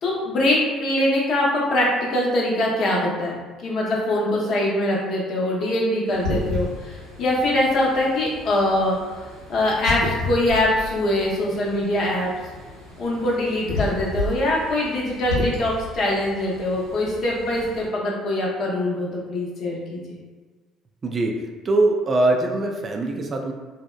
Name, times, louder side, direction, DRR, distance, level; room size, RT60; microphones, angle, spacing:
voice 1, 0.0-12.3 13.0-20.2, left 1 dB, 55° left, -3 dB, 0.7 m, -23 dB
sound 1, 6.1-17.9, left 2 dB, 90° right, 1.1 m, -33 dB
voice 2, 21.0-23.5, right 2 dB, 40° right, 2 dB, 0.3 m, -22 dB
2.7 x 2.1 x 2.2 m, 1.4 s
hypercardioid pair, 55°, 0 cm